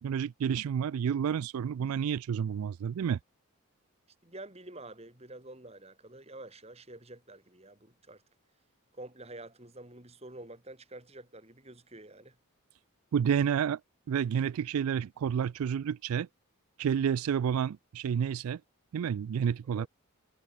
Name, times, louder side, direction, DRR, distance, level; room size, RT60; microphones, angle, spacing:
voice 1, 0.0-3.2 13.1-13.8 14.1-16.3 16.8-18.6 18.9-19.9, right 8 dB, 90° right, 0.3 m, -30 dB
voice 2, 4.2-8.2 8.9-12.4 19.7-19.9, right 2 dB, 30° right, 3.7 m, -48 dB
head